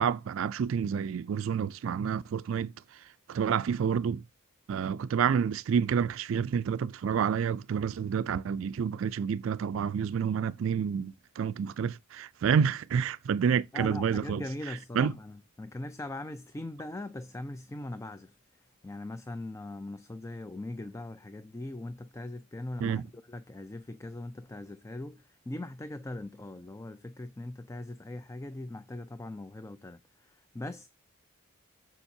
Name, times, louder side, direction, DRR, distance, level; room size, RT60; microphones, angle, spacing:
voice 1, 0.0-3.0 3.3-4.2 4.7-14.4 14.9-15.1 22.8-23.0, right 7 dB, 70° right, 0.3 m, -29 dB
voice 2, 13.7-30.9, left 1 dB, 15° left, 0.4 m, -41 dB
7.1 x 7.1 x 2.7 m
head